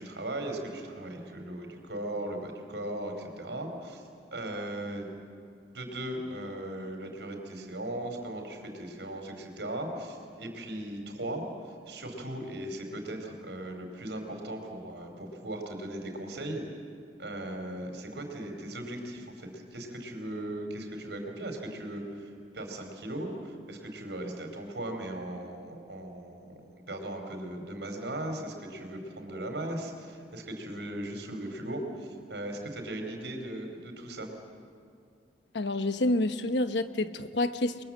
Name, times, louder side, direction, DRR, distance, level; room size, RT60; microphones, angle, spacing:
voice 1, 0.0-4.0 4.3-5.1 5.7-16.6 17.2-34.3, right 1 dB, 75° right, 4.7 m, -38 dB
voice 2, 35.5-37.8, left 2 dB, 80° left, 1.1 m, -28 dB
30.0 x 22.5 x 7.7 m
head